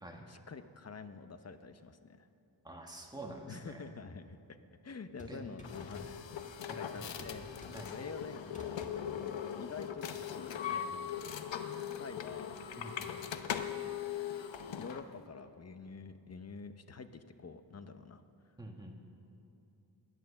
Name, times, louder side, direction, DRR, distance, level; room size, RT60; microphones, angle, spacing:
voice 1, 0.3-2.3 3.5-4.4 4.8-6.2 6.5-7.5 7.9-8.8 9.2-11.1 12.0-12.6 13.0-13.4 14.8-18.2, left 4 dB, 35° left, 10 dB, 0.6 m, -48 dB
voice 2, 2.6-3.8 5.3-5.4 6.7-6.8 7.7-7.9 12.8-13.1 18.6-18.9, right 1 dB, 10° right, 1 dB, 1.6 m, -47 dB
sound 1, 5.2-6.5 6.9-8.2 8.4-9.0 9.4-10.3, equal, 15° left, 1.7 m, -52 dB
sound 2, 5.6-15.1, left 9 dB, 85° left, 0.9 m, -40 dB
18.0 x 11.0 x 7.0 m, 2.8 s
wide cardioid pair, 175°, 43 cm